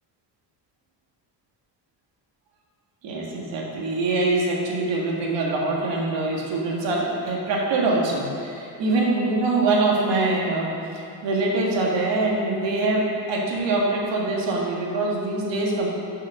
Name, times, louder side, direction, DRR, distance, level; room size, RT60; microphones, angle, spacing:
voice 1, 3.0-15.9, right 2 dB, 75° right, -2 dB, 1.8 m, -24 dB
6.3 x 5.7 x 6.3 m, 2.6 s
cardioid pair, 120°, 44 cm